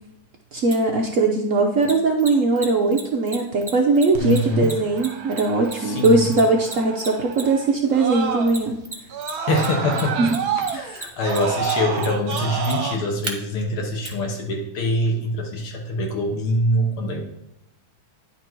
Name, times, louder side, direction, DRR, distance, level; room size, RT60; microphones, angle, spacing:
voice 1, 0.5-8.8 10.2-10.4, right 3 dB, 85° right, 1 dB, 0.7 m, -20 dB
Mechanisms, 0.7-0.8 1.8-7.7 8.5-9.3 9.6-13.3 14.0-14.1, right 3 dB, 30° right, 0.5 m, -34 dB
Screaming, 4.1-8.8 9.1-12.9, right 6 dB, 55° right, 1.1 m, -29 dB
voice 2, 4.2-4.7 5.8-6.3 9.5-10.3 10.7-17.2, left 1 dB, 75° left, 1 dB, 2.0 m, -24 dB
10.0 x 4.5 x 4.5 m, 0.85 s
omnidirectional pair, 2.4 m